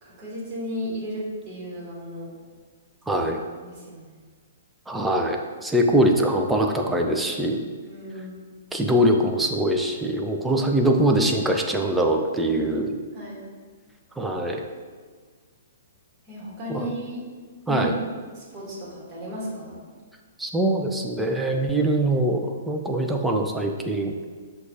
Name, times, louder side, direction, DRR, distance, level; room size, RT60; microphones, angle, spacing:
voice 1, 0.0-2.3 3.6-4.2 7.8-8.4 13.1-13.4 16.3-17.2 17.6-18.1 18.3-19.8, equal, 25° right, -5 dB, 1.2 m, -34 dB
voice 2, 3.1-3.4 4.9-7.6 8.7-12.9 14.2-14.6 16.7-16.9 17.7-17.9 20.4-24.1, right 1 dB, 5° right, 2 dB, 0.3 m, -23 dB
5.9 x 2.3 x 2.7 m, 1.5 s
figure-of-eight pair, 115°, 0 cm